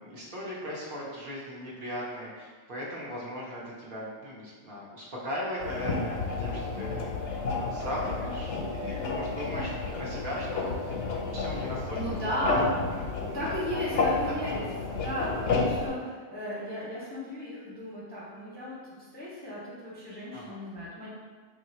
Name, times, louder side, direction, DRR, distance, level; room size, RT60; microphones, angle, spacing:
voice 1, 0.0-12.6 13.3-14.0 14.5-15.5 20.3-20.6, equal, 55° right, -6 dB, 0.8 m, -38 dB
sound 1, 5.6-15.9, left 3 dB, 85° left, 0.9 m, -31 dB
voice 2, 11.9-12.8 13.2-14.6 15.0-21.1, equal, 10° left, -7 dB, 0.5 m, -35 dB
2.7 x 2.4 x 4.1 m, 1.5 s
omnidirectional pair, 1.2 m